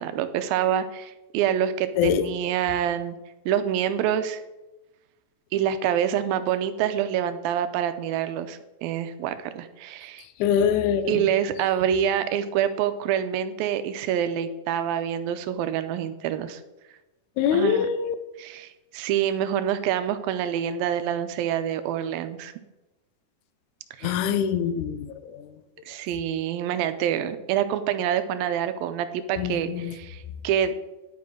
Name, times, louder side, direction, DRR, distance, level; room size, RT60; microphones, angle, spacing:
voice 1, 0.0-3.2 3.5-4.4 5.5-10.2 11.1-16.6 17.5-17.9 18.4-22.5 24.0-24.2 25.9-30.7, right 9 dB, 90° right, 11 dB, 2.5 m, -26 dB
voice 2, 10.4-11.2 17.4-18.2 24.0-25.5 29.4-30.0, left 8 dB, 75° left, 12 dB, 1.9 m, -24 dB
10.5 x 9.6 x 3.7 m, 1.0 s
omnidirectional pair, 4.1 m